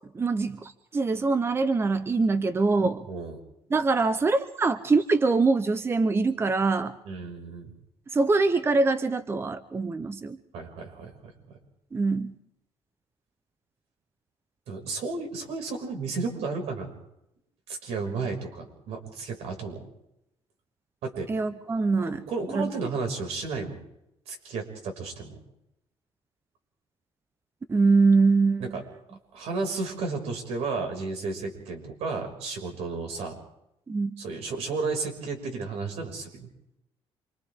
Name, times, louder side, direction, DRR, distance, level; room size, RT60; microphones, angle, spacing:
voice 1, 0.1-3.1 3.7-6.9 8.1-10.4 11.9-12.3 21.3-22.2 22.5-22.7 27.7-28.8 33.9-34.1, right 3 dB, 25° right, 11 dB, 0.8 m, -23 dB
voice 2, 3.1-3.4 7.0-7.7 10.5-11.6 14.7-16.9 17.7-19.8 21.0-21.3 22.0-23.8 24.3-25.4 28.6-28.8 29.3-33.4 34.2-36.5, right 4 dB, 85° right, 2 dB, 6.0 m, -33 dB
28.5 x 25.0 x 3.7 m, 0.82 s
cardioid pair, 130°, 11 cm